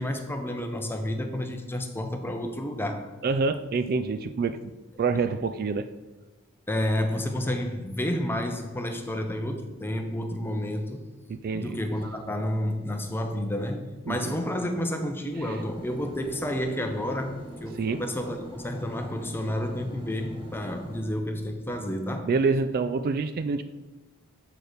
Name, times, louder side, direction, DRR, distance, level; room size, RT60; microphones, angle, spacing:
voice 1, 0.0-3.1 5.1-5.2 6.7-11.0 11.5-22.3, left 1 dB, 10° left, 5 dB, 0.6 m, -30 dB
voice 2, 3.2-4.7 5.0-5.9 11.3-11.8 14.1-14.3 17.8-18.0 22.2-23.6, right 4 dB, 45° right, 11 dB, 0.3 m, -27 dB
sound 1, 15.3-21.0, equal, 25° right, 1.1 m, -42 dB
7.9 x 4.5 x 5.0 m, 1.1 s
head